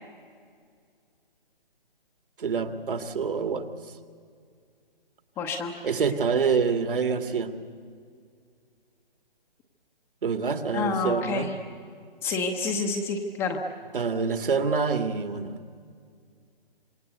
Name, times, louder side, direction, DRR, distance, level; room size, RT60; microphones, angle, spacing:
voice 1, 2.4-3.7 5.8-7.5 10.2-11.5 13.9-15.5, right 5 dB, 65° right, 9 dB, 2.3 m, -26 dB
voice 2, 5.4-5.7 10.7-11.5 12.2-13.6, left 4 dB, 10° left, 3 dB, 0.8 m, -28 dB
26.0 x 22.0 x 8.2 m, 2.2 s
hypercardioid pair, 155°, 29 cm